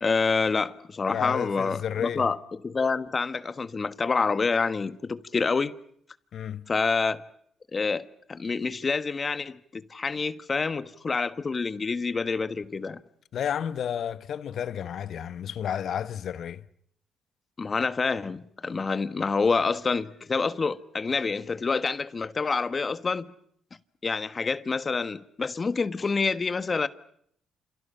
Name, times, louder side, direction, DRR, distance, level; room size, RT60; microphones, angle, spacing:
voice 1, 0.0-2.4 2.6-5.7 6.7-7.2 7.7-13.0 17.6-23.3 24.0-26.9, left 4 dB, 35° left, 1.3 m, -27 dB
voice 2, 1.1-2.3 6.3-6.7 13.3-16.6, left 9 dB, 65° left, 1.1 m, -31 dB
29.0 x 28.0 x 5.7 m
cardioid pair, 90°, 0 cm